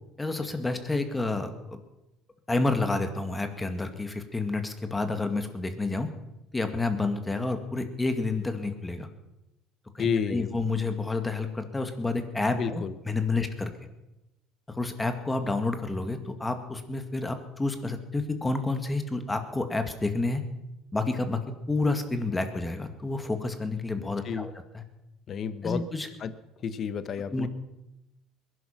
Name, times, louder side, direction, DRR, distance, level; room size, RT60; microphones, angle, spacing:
voice 1, 0.2-1.8 2.5-6.1 6.5-9.1 9.9-13.7 14.7-20.4 20.9-21.4 21.7-24.8 25.6-26.1 27.3-27.5, left 3 dB, 15° left, 7 dB, 2.1 m, -29 dB
voice 2, 10.0-10.5 12.5-12.9 24.0-24.5 25.3-25.8 26.2-26.3 26.6-27.5, left 6 dB, 45° left, 13 dB, 1.0 m, -30 dB
21.0 x 11.5 x 5.9 m, 0.95 s
cardioid pair, 110°, 0 cm